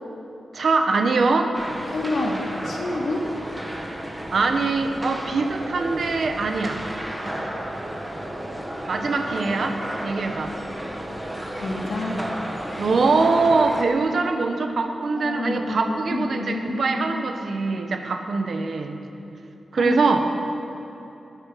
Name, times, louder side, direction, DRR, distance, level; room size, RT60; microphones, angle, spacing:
voice 1, 0.5-1.5 3.9-4.0 4.3-6.8 8.9-10.5 12.8-19.0 19.7-20.2, right 3 dB, 55° right, 5 dB, 1.3 m, -23 dB
sound 1, 1.5-13.8, right 1 dB, 10° right, 1.5 m, -33 dB
voice 2, 1.9-3.3 11.5-12.2 15.2-17.2 19.8-20.0, left 2 dB, 75° left, -1 dB, 2.7 m, -28 dB
20.0 x 9.8 x 5.9 m, 3.0 s
wide cardioid pair, 135°, 0 cm